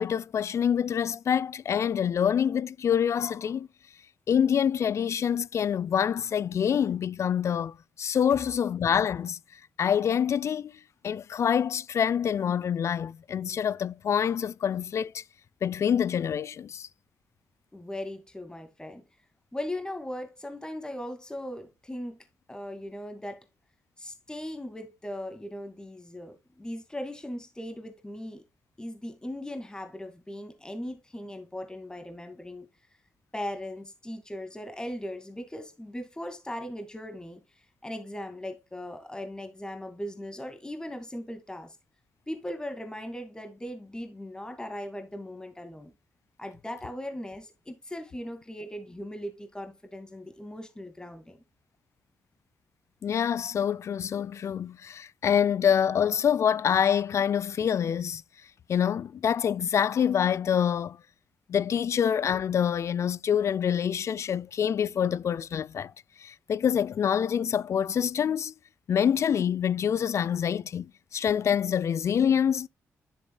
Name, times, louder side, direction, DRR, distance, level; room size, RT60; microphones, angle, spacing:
voice 1, 0.0-3.7 4.3-9.4 9.8-10.7 11.0-15.2 15.6-16.9 53.0-58.2 58.7-61.0 61.5-65.9 66.2-68.5 68.9-72.7, left 8 dB, 60° left, 0.4 m, -26 dB
voice 2, 17.7-19.0 19.5-22.2 22.5-23.5 24.0-28.4 28.8-32.7 33.3-41.8 42.3-45.9 46.4-51.4, left 1 dB, 15° left, 2.2 m, -38 dB
11.0 x 7.1 x 2.3 m
supercardioid pair, 60°, 6 cm